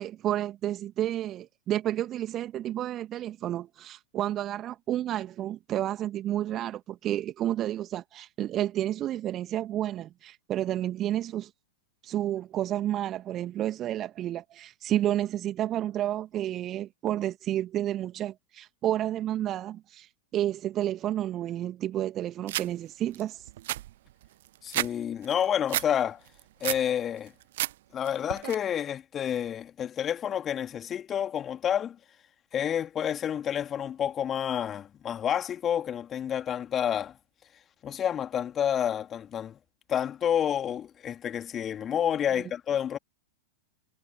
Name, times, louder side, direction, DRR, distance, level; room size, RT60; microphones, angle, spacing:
voice 1, 0.0-11.5 12.0-23.4 42.3-42.4, right 12 dB, 30° right, 2.2 m, -31 dB
sound 1, 22.5-22.7 23.1-23.2 23.5-24.9 25.2-25.9 26.3-26.9 27.3-27.7 28.0-28.5, right 15 dB, 55° right, 1.2 m, -31 dB
voice 2, 24.6-26.2 26.6-27.3 27.9-32.0 32.5-37.2 37.8-39.6 39.9-43.0, left 9 dB, 25° left, 2.6 m, -29 dB
figure-of-eight pair, 95°, 0 cm